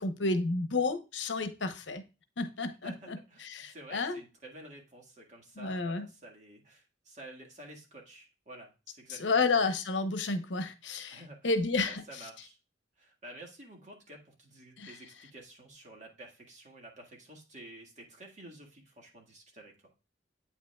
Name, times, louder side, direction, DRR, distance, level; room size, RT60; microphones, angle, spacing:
voice 1, 0.0-2.0 2.4-4.2 5.6-6.1 9.1-12.3 14.8-15.0, left 3 dB, 75° left, 10 dB, 0.8 m, -31 dB
voice 2, 2.8-9.7 11.1-11.4 11.8-12.6 13.0-19.7, right 1 dB, 40° right, 0 dB, 1.7 m, -51 dB
8.4 x 5.5 x 2.2 m, 0.30 s
head